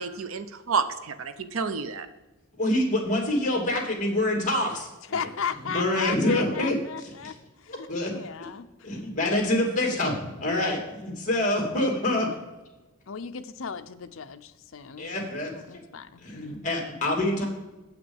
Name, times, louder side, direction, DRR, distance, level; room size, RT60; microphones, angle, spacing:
voice 1, 0.0-2.1, right 5 dB, 70° right, 10 dB, 0.7 m, -30 dB
voice 2, 2.5-5.2 5.7-7.3 7.7-8.1 8.8-12.3 15.0-15.8 16.2-17.5, left 1 dB, 35° left, 1 dB, 2.6 m, -26 dB
voice 3, 5.1-7.9 8.1-8.9 13.1-16.2, left 6 dB, 65° left, 9 dB, 0.6 m, -36 dB
8.3 x 6.0 x 7.1 m, 1.1 s
head